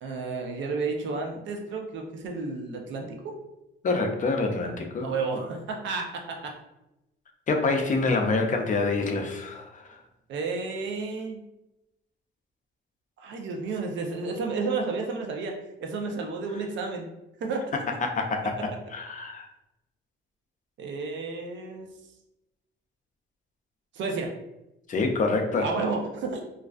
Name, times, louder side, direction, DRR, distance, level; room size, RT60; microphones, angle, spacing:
voice 1, 0.0-3.4 4.6-6.5 10.3-11.4 13.2-17.1 17.4-17.7 20.8-21.9 23.9-24.3 25.6-26.4, right 4 dB, 70° right, 2 dB, 0.5 m, -32 dB
voice 2, 3.8-5.1 7.5-10.0 18.0-19.5 24.9-25.7, left 3 dB, 40° left, 3 dB, 0.4 m, -26 dB
2.4 x 2.2 x 2.3 m, 0.91 s
cardioid pair, 90°, 20 cm